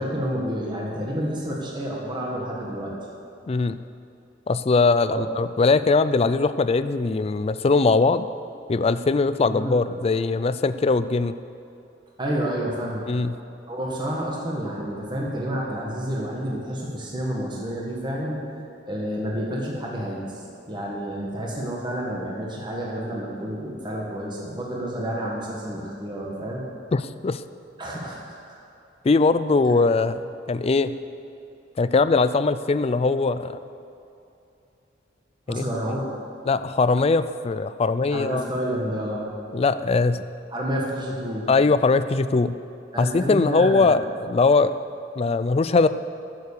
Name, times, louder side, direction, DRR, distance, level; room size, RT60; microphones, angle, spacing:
voice 1, 0.0-2.9 5.1-5.2 9.5-9.7 12.2-13.1 13.7-18.4 18.9-26.6 27.8-28.2 28.5-28.6 35.5-36.0 38.1-39.3 40.5-41.5 42.9-43.9, equal, 25° right, -3 dB, 1.7 m, -29 dB
voice 2, 3.5-3.8 4.5-8.3 8.7-11.4 13.1-13.4 26.9-27.4 29.0-30.9 31.8-33.6 35.5-35.6 36.5-38.5 39.5-40.2 41.5-42.5 43.0-44.7 45.2-45.9, left 3 dB, 35° left, 13 dB, 0.4 m, -21 dB
14.0 x 7.2 x 6.7 m, 2.8 s
head